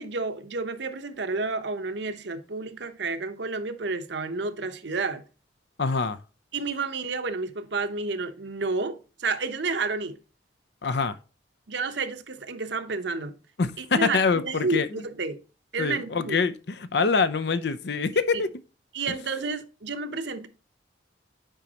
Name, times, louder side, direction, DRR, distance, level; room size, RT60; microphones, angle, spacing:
voice 1, 0.0-5.2 6.5-10.2 11.7-13.3 13.8-14.2 14.4-15.4 15.7-16.4 18.3-18.4 18.9-20.5, right 3 dB, 65° right, 0.8 m, -30 dB
voice 2, 5.8-6.2 10.8-11.1 13.6-15.0 15.8-18.5 19.1-19.2, left 4 dB, 60° left, 0.5 m, -25 dB
8.9 x 5.1 x 2.9 m
head